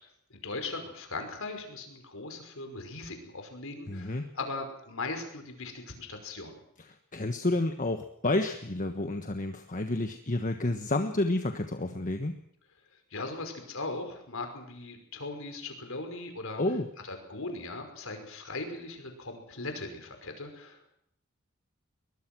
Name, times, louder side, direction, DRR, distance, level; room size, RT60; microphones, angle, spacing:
voice 1, 0.3-6.6 13.1-16.6 17.0-21.0, left 3 dB, 65° left, 5 dB, 5.4 m, -39 dB
voice 2, 3.9-4.2 7.1-12.4 16.6-16.9, left 2 dB, 40° left, 6 dB, 1.4 m, -30 dB
22.5 x 21.0 x 6.2 m, 0.72 s
head